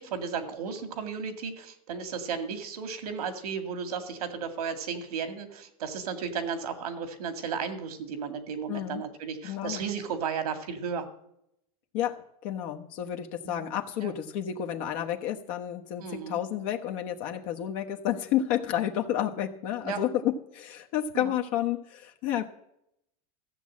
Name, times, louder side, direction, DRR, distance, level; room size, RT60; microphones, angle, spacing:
voice 1, 0.0-11.1 13.4-13.7 14.0-14.1 16.0-16.4 19.8-20.0 21.1-21.3, right 6 dB, 85° right, 8 dB, 2.0 m, -34 dB
voice 2, 8.7-9.0 9.4-9.8 11.9-22.5, left 11 dB, 60° left, 3 dB, 1.2 m, -31 dB
14.5 x 7.2 x 7.5 m, 0.78 s
supercardioid pair, 120°, 19 cm